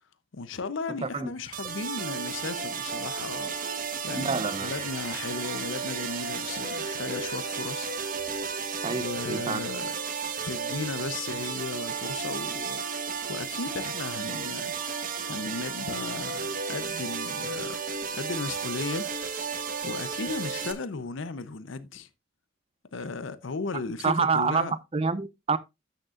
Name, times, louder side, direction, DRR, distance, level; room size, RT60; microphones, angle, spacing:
voice 1, 0.3-7.9 8.9-10.0 10.4-14.7 15.2-17.8 18.1-19.1 19.8-22.1 22.9-24.8, left 4 dB, 70° left, 0.7 m, -36 dB
sound 1, 1.5-20.7, right 5 dB, 45° right, 1.2 m, -33 dB
sound 2, 2.3-8.8, left 3 dB, 50° left, 3.1 m, -49 dB
voice 2, 4.2-4.7 8.8-9.0 9.3-9.6 24.0-25.6, right 5 dB, 30° right, 0.5 m, -27 dB
12.5 x 6.6 x 2.4 m
head